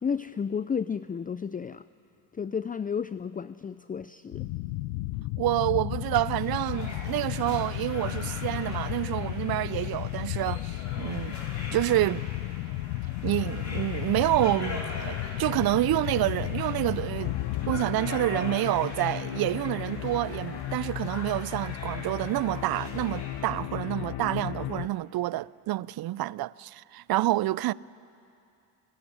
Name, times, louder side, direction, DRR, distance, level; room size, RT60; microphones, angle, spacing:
voice 1, 0.0-1.8 2.3-4.5, left 6 dB, 20° left, 0.5 m, -32 dB
sound 1, 4.3-17.8, left 18 dB, 85° left, 0.7 m, -33 dB
voice 2, 5.4-11.4 11.7-12.2 13.2-17.4 17.6-27.7, right 16 dB, 55° right, 0.5 m, -28 dB
sound 2, 6.2-23.4, left 2 dB, 35° left, 5.5 m, -43 dB
sound 3, 17.2-24.9, left 13 dB, 55° left, 1.0 m, -35 dB
29.5 x 12.5 x 10.0 m
hypercardioid pair, 55°, 46 cm